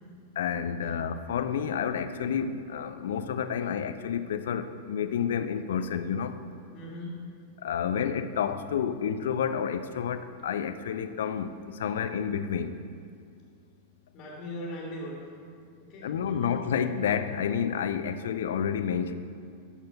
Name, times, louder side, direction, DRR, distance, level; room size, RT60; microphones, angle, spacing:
voice 1, 0.4-6.4 7.6-12.7 16.0-19.1, left 7 dB, 60° left, 10 dB, 0.4 m, -30 dB
voice 2, 6.7-7.2 14.1-15.2 15.9-16.6, left 1 dB, 40° left, -3 dB, 1.7 m, -39 dB
12.5 x 4.4 x 5.5 m, 2.3 s
figure-of-eight pair, 90°, 0 cm